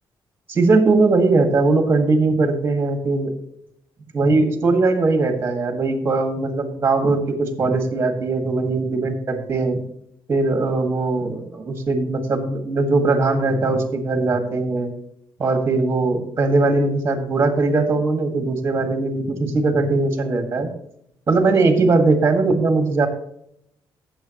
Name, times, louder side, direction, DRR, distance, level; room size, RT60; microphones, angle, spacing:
voice 1, 0.5-3.3 4.1-9.8 10.3-14.9 15.4-20.7 21.3-23.1, right 3 dB, 30° right, 6 dB, 1.8 m, -20 dB
16.0 x 7.2 x 3.0 m, 0.72 s
cardioid pair, 155°, 9 cm